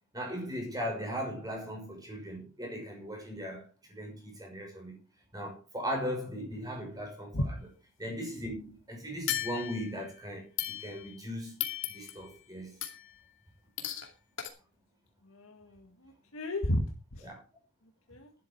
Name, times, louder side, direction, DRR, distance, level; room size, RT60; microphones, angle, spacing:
voice 1, 0.1-5.0 5.3-7.4 8.0-11.5 11.9-12.8 17.2-17.4, equal, 15° right, 6.1 m, -38 dB
sound 1, 9.3-10.0 10.6-11.2 11.6-12.3 12.8-13.2 13.8-14.1 14.4-14.5, left 11 dB, 65° left, 2.6 m, -36 dB
voice 2, 15.3-16.8 17.1-17.3 18.1-18.3, left 1 dB, 80° left, 2.0 m, -33 dB
12.5 x 11.0 x 4.7 m
head